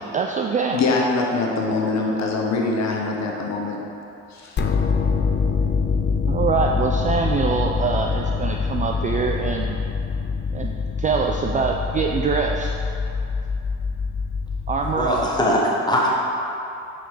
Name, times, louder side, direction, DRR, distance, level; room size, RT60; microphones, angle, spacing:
voice 1, 0.1-0.8 6.3-9.8 10.5-10.7 11.0-12.8 14.7-15.2, right 5 dB, 20° right, 1 dB, 0.3 m, -24 dB
voice 2, 0.7-3.8 4.3-4.6, left 3 dB, 45° left, -1 dB, 1.1 m, -23 dB
sound 1, 4.6-15.5, left 5 dB, 30° left, 0.6 m, -25 dB
voice 3, 15.0-16.2, equal, 10° left, -4 dB, 1.4 m, -21 dB
5.2 x 4.7 x 4.6 m, 2.8 s
hypercardioid pair, 60°, 37 cm